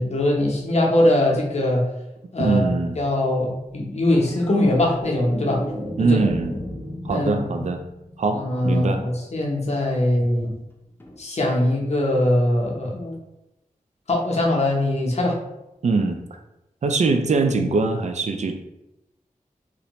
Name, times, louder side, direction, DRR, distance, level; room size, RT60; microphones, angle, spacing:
voice 1, 0.0-1.8 2.3-2.7 3.0-5.6 6.0-6.3 7.1-7.7 8.3-10.5 11.2-13.1 14.1-15.4, left 1 dB, 50° left, -1 dB, 0.7 m, -21 dB
voice 2, 2.4-3.0 6.0-6.5 7.0-7.8 8.2-9.0 15.8-16.2 16.8-18.5, right 3 dB, 55° right, 5 dB, 0.4 m, -22 dB
sound 1, 4.1-8.6 11.0-11.2, left 1 dB, 15° left, 0.5 m, -34 dB
2.6 x 2.1 x 2.9 m, 0.90 s
cardioid pair, 50°, 14 cm